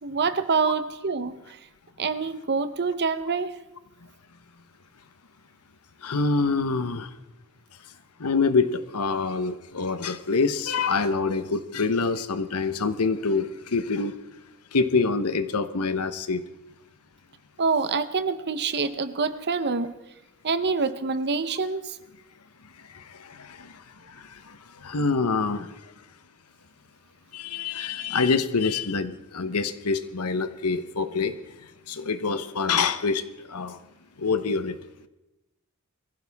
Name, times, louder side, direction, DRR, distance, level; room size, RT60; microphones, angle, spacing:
voice 1, 0.0-1.6 2.0-3.5 17.6-19.9 20.4-22.0, right 4 dB, 50° right, 12 dB, 0.9 m, -26 dB
voice 2, 6.0-7.1 8.2-14.2 14.7-16.4 22.9-25.9 27.3-33.8 34.2-34.8, left 4 dB, 90° left, 11 dB, 1.0 m, -26 dB
22.5 x 15.5 x 3.5 m, 0.98 s
head